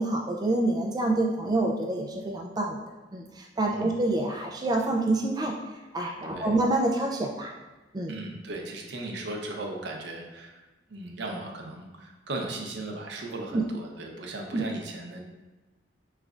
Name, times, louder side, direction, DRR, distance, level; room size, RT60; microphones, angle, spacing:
voice 1, 0.0-2.8 3.1-5.5 5.9-7.5 7.9-8.1 13.5-13.6 14.5-14.6, right 2 dB, 20° right, 0 dB, 0.3 m, -27 dB
voice 2, 8.1-10.6 10.9-15.2, right 2 dB, 65° right, 1 dB, 0.6 m, -37 dB
5.0 x 3.2 x 2.4 m, 1.2 s
head